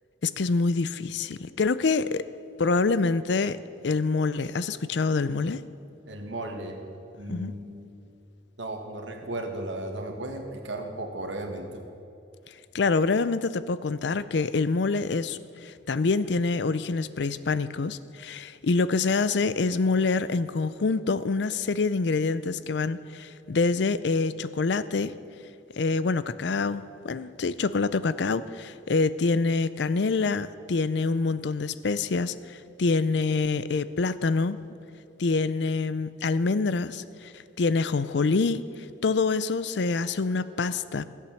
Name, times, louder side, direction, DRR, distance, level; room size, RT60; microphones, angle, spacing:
voice 1, 0.2-2.2 2.6-3.6 3.8-5.6 7.3-7.5 12.7-25.1 25.8-34.6 35.2-37.3 37.6-38.6 39.0-41.0, left 4 dB, 70° left, 15 dB, 0.5 m, -26 dB
voice 2, 6.1-6.8 7.2-7.9 8.6-11.8, right 1 dB, 80° right, 3 dB, 1.7 m, -35 dB
15.0 x 8.3 x 7.1 m, 2.6 s
head